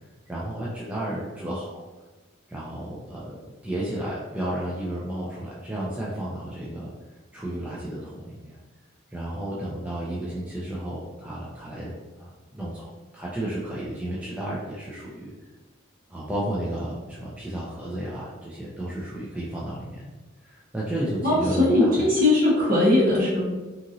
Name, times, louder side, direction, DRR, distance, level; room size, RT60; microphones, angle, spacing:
voice 1, 0.3-1.7 2.5-3.4 3.6-6.9 7.3-8.6 9.1-12.8 13.1-15.3 16.1-20.1 20.4-22.0, right 1 dB, 5° right, -7 dB, 0.4 m, -32 dB
voice 2, 21.2-23.5, left 2 dB, 45° right, -6 dB, 1.1 m, -20 dB
2.9 x 2.5 x 2.6 m, 1.2 s
head